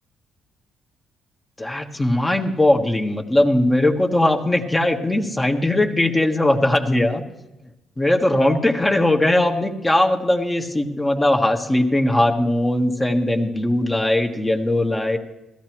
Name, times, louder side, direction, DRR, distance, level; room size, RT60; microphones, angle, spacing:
voice 1, 1.6-7.3 8.0-15.2, left 1 dB, 15° left, 3 dB, 1.4 m, -19 dB
16.5 x 13.0 x 3.0 m, 0.96 s
cardioid pair, 90°, 0 cm